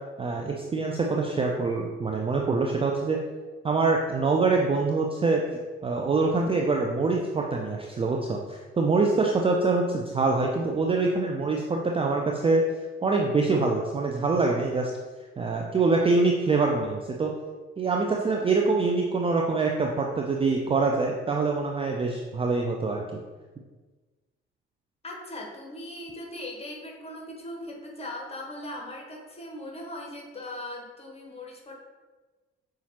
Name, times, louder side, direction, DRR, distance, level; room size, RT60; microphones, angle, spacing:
voice 1, 0.2-3.2 3.6-5.4 5.8-12.7 13.0-14.9 15.4-17.3 17.8-23.0, right 3 dB, 20° right, 0 dB, 0.4 m, -25 dB
voice 2, 25.0-31.7, left 1 dB, 20° left, -1 dB, 1.3 m, -39 dB
6.9 x 2.5 x 2.9 m, 1.3 s
figure-of-eight pair, 50°, 31 cm